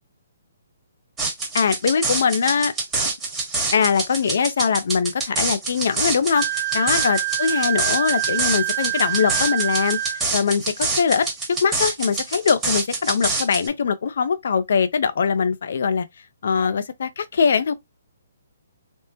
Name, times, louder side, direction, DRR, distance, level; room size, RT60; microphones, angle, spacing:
sound 1, 1.2-13.7, right 3 dB, 10° right, 1.1 m, -26 dB
voice 1, 1.5-2.7 3.7-10.0 10.3-16.1 16.4-17.7, left 6 dB, 65° left, 0.5 m, -22 dB
Wind instrument woodwind instrument, 6.3-10.2, right 18 dB, 60° right, 0.4 m, -26 dB
3.5 x 2.0 x 2.7 m
hypercardioid pair, 145°, 0 cm